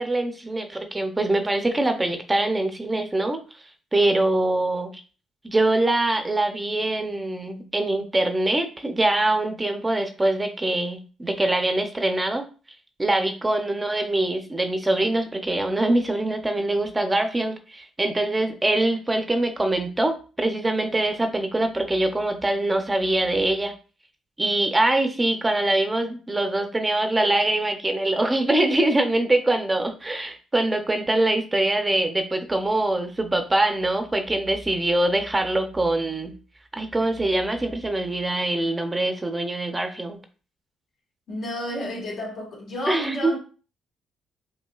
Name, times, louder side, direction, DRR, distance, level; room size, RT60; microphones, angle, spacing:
voice 1, 0.0-3.4 3.9-5.0 5.4-12.4 13.0-23.7 24.4-36.3 36.7-40.2 42.9-43.3, right 2 dB, 15° right, 0.6 m, -23 dB
voice 2, 41.3-43.4, left 1 dB, 65° left, 1.8 m, -31 dB
5.2 x 2.7 x 2.4 m
cardioid pair, 90°, 0 cm